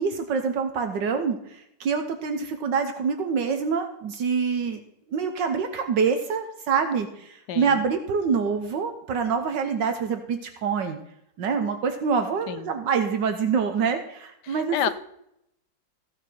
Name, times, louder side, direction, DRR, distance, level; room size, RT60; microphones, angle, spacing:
voice 1, 0.0-4.8 5.1-11.0 11.4-14.9, right 6 dB, 75° right, 7 dB, 1.6 m, -26 dB
voice 2, 7.5-7.8 12.5-12.7 14.4-14.9, left 10 dB, 70° left, 12 dB, 1.2 m, -29 dB
15.0 x 6.5 x 4.6 m, 0.78 s
omnidirectional pair, 2.0 m